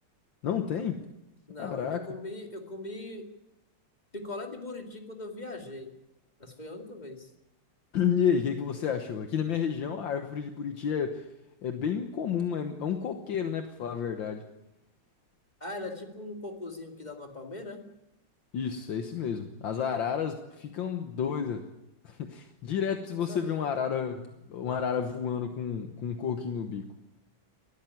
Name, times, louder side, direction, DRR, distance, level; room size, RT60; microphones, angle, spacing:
voice 1, 0.4-1.1 1.6-2.1 7.9-11.3 11.6-14.4 18.5-21.7 22.0-26.9, left 7 dB, 70° left, 6 dB, 1.9 m, -31 dB
voice 2, 1.5-3.3 4.1-5.9 6.4-7.3 15.6-17.9 23.3-23.7, left 2 dB, 20° left, 3 dB, 2.5 m, -40 dB
20.0 x 14.0 x 9.8 m, 0.93 s
omnidirectional pair, 2.2 m